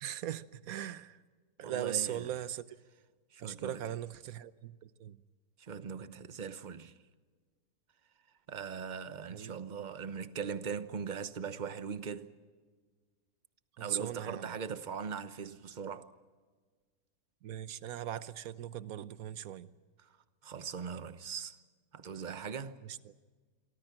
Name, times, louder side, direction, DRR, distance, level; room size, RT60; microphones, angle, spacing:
voice 1, 0.0-1.2 1.6-2.7 3.4-5.2 9.3-9.6 13.8-14.5 17.4-19.7 22.8-23.0, right 11 dB, 65° right, 1.2 m, -39 dB
voice 2, 1.6-2.4 3.3-4.0 5.6-6.9 8.5-12.3 13.8-16.1 20.0-20.1 20.4-21.6 21.9-22.9, right 6 dB, 35° right, 0.9 m, -40 dB
27.5 x 24.0 x 5.9 m
omnidirectional pair, 1.7 m